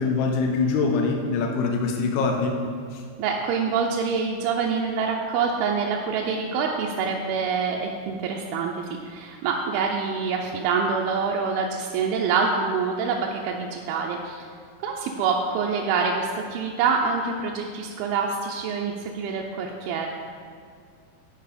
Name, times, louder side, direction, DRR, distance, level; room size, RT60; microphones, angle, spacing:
voice 1, 0.0-2.6 2.9-3.0, left 4 dB, 80° left, 2 dB, 2.6 m, -24 dB
voice 2, 3.2-14.4 14.8-20.1, right 5 dB, 80° right, 0 dB, 2.3 m, -26 dB
9.4 x 5.0 x 5.0 m, 2.2 s
omnidirectional pair, 4.6 m